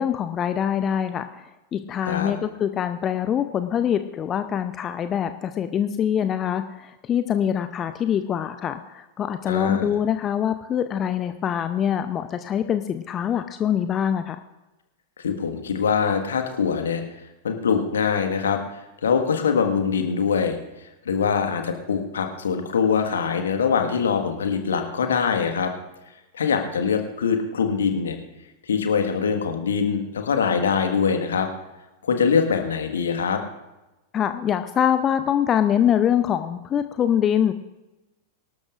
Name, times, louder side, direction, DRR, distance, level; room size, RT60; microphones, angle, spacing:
voice 1, 0.0-1.4 1.7-14.4 34.1-37.5, left 9 dB, 25° left, 10 dB, 0.6 m, -24 dB
voice 2, 9.5-9.9 15.2-17.0 17.4-20.6 21.0-25.7 26.3-28.2 28.6-31.5 32.0-33.4, left 6 dB, 65° left, 5 dB, 1.6 m, -23 dB
24.0 x 12.5 x 2.5 m, 1.0 s
figure-of-eight pair, 90°, 0 cm